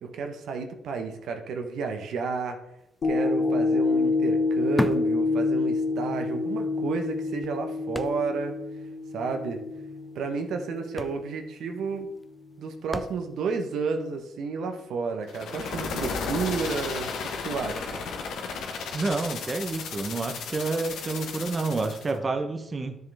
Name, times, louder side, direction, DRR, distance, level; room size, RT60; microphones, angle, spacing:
voice 1, 0.0-2.6 3.0-8.6 9.1-9.6 10.1-12.1 12.6-17.1 17.4-18.0, right 5 dB, 75° right, 5 dB, 1.1 m, -31 dB
sound 1, 3.0-11.4 11.9-12.0, left 3 dB, 50° left, 1.3 m, -27 dB
sound 2, 3.0-3.1 3.4-6.0 6.4-6.5 7.1-8.6 8.9-9.0 9.2-9.5 10.3-10.5 10.8-13.6 14.2-14.3, left 1 dB, 10° left, 0.4 m, -35 dB
sound 3, 15.3-22.1, left 5 dB, 75° left, 1.3 m, -34 dB
voice 2, 18.9-23.0, right 3 dB, 30° right, 6 dB, 0.9 m, -29 dB
10.5 x 6.6 x 3.5 m, 0.84 s
cardioid pair, 90°, 0 cm